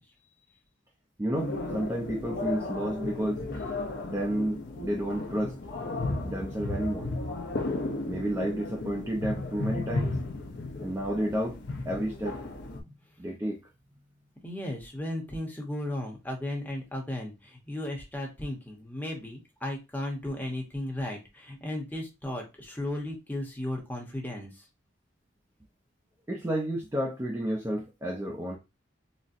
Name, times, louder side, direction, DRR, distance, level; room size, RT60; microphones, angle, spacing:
voice 1, 1.2-3.4 4.1-5.6 6.2-7.1 8.1-10.2 10.8-11.6 11.8-12.5 12.8-13.6 26.3-28.6, right 1 dB, 15° right, 0.4 m, -31 dB
sound 1, 1.3-12.8, left 2 dB, 55° left, 0.6 m, -34 dB
voice 2, 14.4-24.6, left 1 dB, 10° left, 0.7 m, -35 dB
4.0 x 2.0 x 2.5 m
head